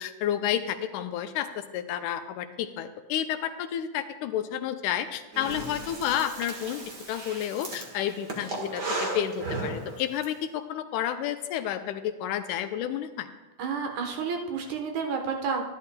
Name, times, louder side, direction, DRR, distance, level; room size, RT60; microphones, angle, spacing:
voice 1, 0.0-6.8 7.1-13.3, left 10 dB, 85° left, 9 dB, 2.1 m, -31 dB
Breathing, 5.3-10.3, right 2 dB, 45° right, 1.5 m, -35 dB
voice 2, 13.6-15.6, right 5 dB, 70° right, 3 dB, 2.4 m, -30 dB
12.5 x 11.5 x 2.2 m, 1.2 s
omnidirectional pair, 3.5 m